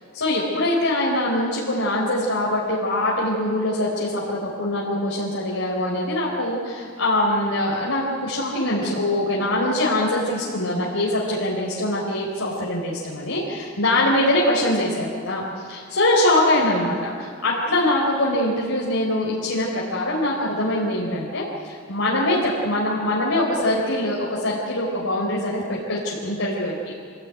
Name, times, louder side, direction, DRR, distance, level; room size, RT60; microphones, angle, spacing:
voice 1, 0.1-26.7, left 1 dB, 70° left, -5 dB, 4.2 m, -23 dB
26.5 x 17.5 x 9.4 m, 2.2 s
head